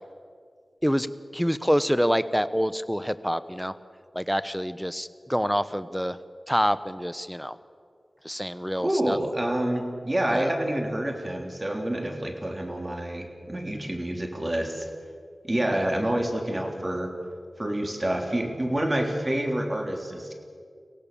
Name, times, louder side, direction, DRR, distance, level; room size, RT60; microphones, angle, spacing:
voice 1, 1.3-3.7 4.1-6.2 6.5-7.6 8.2-9.2 10.3-10.5 15.7-15.9, equal, ahead, 13 dB, 1.0 m, -26 dB
voice 2, 8.8-14.9 15.4-17.1 17.6-20.3, right 1 dB, 35° right, 3 dB, 3.5 m, -28 dB
24.5 x 17.0 x 7.0 m, 2.2 s
cardioid pair, 45°, 0 cm